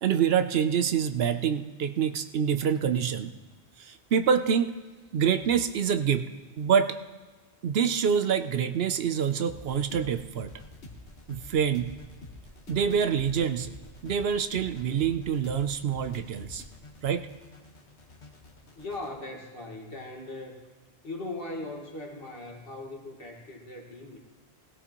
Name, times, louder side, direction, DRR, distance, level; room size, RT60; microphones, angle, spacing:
voice 1, 0.0-3.3 3.8-4.8 5.1-6.3 6.6-7.0 7.6-10.5 11.3-11.9 12.7-13.7 14.0-16.6 17.0-17.3, right 7 dB, 70° right, 10 dB, 0.8 m, -26 dB
sound 1, 9.4-19.1, left 2 dB, 80° left, 1.7 m, -47 dB
voice 2, 18.7-20.6 21.0-24.2, left 2 dB, 60° left, 1 dB, 1.9 m, -39 dB
16.5 x 16.5 x 3.0 m, 1.3 s
omnidirectional pair, 1.1 m